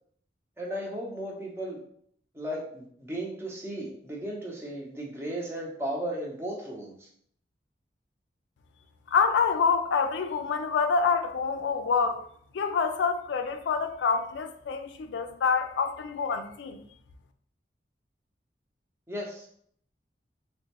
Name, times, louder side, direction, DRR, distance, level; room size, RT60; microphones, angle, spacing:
voice 1, 0.6-1.8 2.3-7.1 19.1-19.4, right 1 dB, 15° right, 0.6 m, -35 dB
voice 2, 9.1-12.2 12.5-16.8, left 5 dB, 85° left, 0.3 m, -27 dB
3.6 x 2.1 x 2.8 m
head